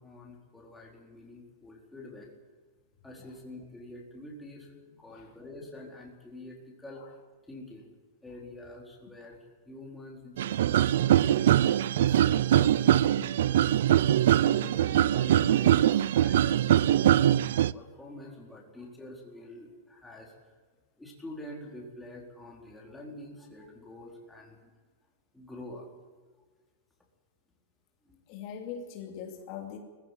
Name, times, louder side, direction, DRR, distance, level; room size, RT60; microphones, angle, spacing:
voice 1, 0.0-2.3 3.0-7.1 7.5-7.9 8.2-10.9 11.2-12.2 12.5-13.7 14.3-20.6 21.0-24.7 25.3-25.9 28.0-28.2, left 1 dB, 5° left, -3 dB, 4.2 m, -47 dB
sound 1, 10.4-17.7, right 11 dB, 75° right, 0.5 m, -22 dB
voice 2, 28.3-29.8, left 7 dB, 45° left, 2 dB, 2.8 m, -41 dB
20.5 x 15.0 x 9.2 m, 1.4 s
supercardioid pair, 155°, 0 cm